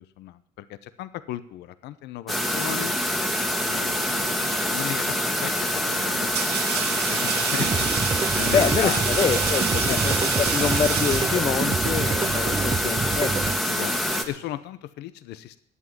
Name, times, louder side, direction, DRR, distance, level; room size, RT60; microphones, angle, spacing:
voice 1, 0.0-2.9 3.6-7.9 8.4-9.0 9.9-10.0 11.9-12.0 13.7-15.6, left 14 dB, 80° left, 14 dB, 0.8 m, -36 dB
sound 1, 2.3-14.2, equal, ahead, 1.5 m, -26 dB
sound 2, 4.7-5.0 5.8-11.8, right 8 dB, 75° right, 1.4 m, -30 dB
sound 3, 7.6-13.6, right 5 dB, 25° right, 0.5 m, -28 dB
voice 2, 8.5-13.8, left 7 dB, 35° left, 10 dB, 0.6 m, -26 dB
11.0 x 8.5 x 9.2 m, 0.69 s
cardioid pair, 110°, 17 cm